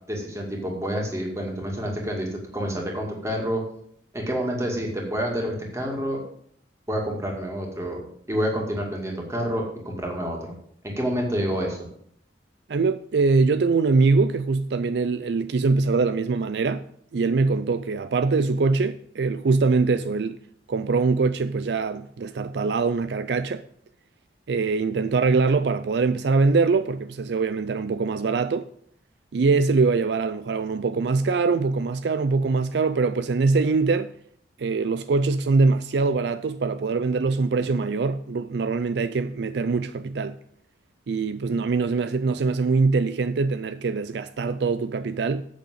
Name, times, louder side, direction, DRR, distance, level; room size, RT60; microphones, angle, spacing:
voice 1, 0.1-3.6 4.1-6.2 6.9-8.0 8.3-10.4 10.8-11.8, equal, 15° right, 2.3 m, -28 dB
voice 2, 12.7-16.8 17.1-20.4 20.7-23.6 24.5-28.7 29.3-34.1 34.6-40.4 41.1-45.4, right 4 dB, 65° right, 0.4 m, -23 dB
8.2 x 6.5 x 7.9 m
head